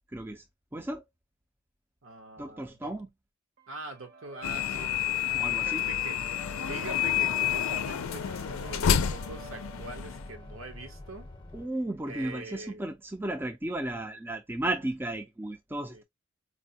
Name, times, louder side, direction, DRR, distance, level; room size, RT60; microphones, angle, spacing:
voice 1, 0.1-0.4 0.7-1.0 2.4-3.1 5.3-5.9 11.5-16.0, right 1 dB, 10° right, 0.4 m, -34 dB
voice 2, 2.0-2.9 3.7-11.3 12.1-12.8 15.9-16.0, right 2 dB, 80° right, 1.0 m, -44 dB
sound 1, 3.6-10.5, right 4 dB, 50° right, 0.8 m, -50 dB
sound 2, 4.4-10.3, left 9 dB, 85° left, 0.4 m, -29 dB
sound 3, 6.7-11.7, left 2 dB, 25° left, 0.7 m, -47 dB
4.3 x 2.1 x 2.6 m
head